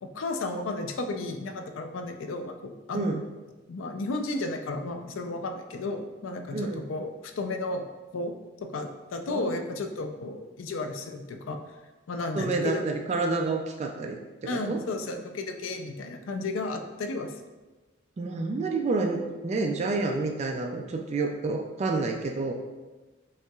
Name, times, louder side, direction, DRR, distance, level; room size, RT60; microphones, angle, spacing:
voice 1, 0.0-3.2 3.7-7.8 8.1-8.3 8.6-11.6 12.1-12.9 14.5-17.4, left 2 dB, 85° left, 6 dB, 0.4 m, -33 dB
voice 2, 6.5-6.8 9.3-9.6 12.4-14.8 18.2-22.5, right 3 dB, 35° right, 2 dB, 0.3 m, -29 dB
5.5 x 2.9 x 2.3 m, 1.2 s
head